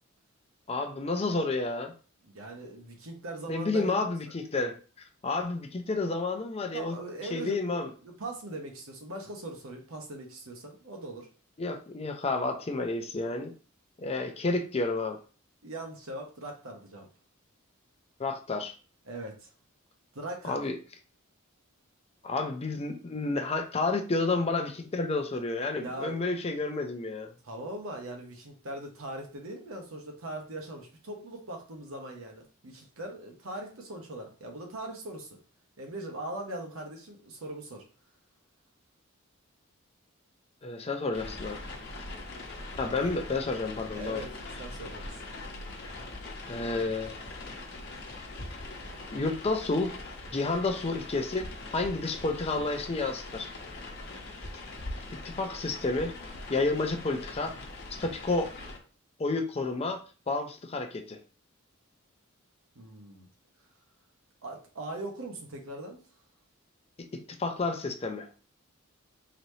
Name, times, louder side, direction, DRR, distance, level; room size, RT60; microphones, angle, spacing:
voice 1, 0.7-1.9 3.5-4.8 5.2-7.0 7.3-7.9 11.6-13.5 14.0-15.2 18.2-18.7 20.4-20.8 22.2-27.3 40.6-41.6 42.8-44.2 46.5-47.2 49.1-50.0 50.3-53.5 54.5-54.6 55.2-56.1 56.5-57.6 58.0-58.5 59.2-61.2 67.4-68.3, left 3 dB, 30° left, 5 dB, 0.5 m, -30 dB
voice 2, 2.2-4.0 6.7-11.3 15.6-17.1 19.1-19.5 20.1-20.6 25.8-26.2 27.4-35.4 35.8-37.8 43.0-43.1 43.9-45.2 62.7-63.3 64.4-66.0, right 1 dB, 75° right, 2 dB, 1.1 m, -40 dB
sound 1, 41.1-58.8, left 2 dB, 50° left, 1.0 m, -42 dB
4.0 x 3.2 x 2.8 m, 0.36 s
head